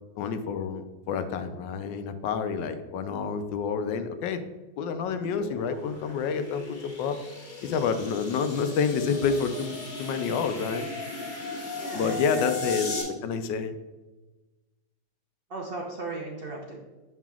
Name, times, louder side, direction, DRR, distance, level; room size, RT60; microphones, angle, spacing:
voice 1, 0.2-4.4 4.8-7.2 7.6-10.9 11.9-12.9 13.2-13.7, left 6 dB, 80° left, 9 dB, 1.3 m, -28 dB
sound 1, 5.1-13.0, left 3 dB, 40° left, 1.7 m, -37 dB
voice 2, 11.7-12.6 15.5-16.8, right 3 dB, 70° right, -1 dB, 0.5 m, -37 dB
7.4 x 5.9 x 2.3 m, 1.2 s
omnidirectional pair, 2.0 m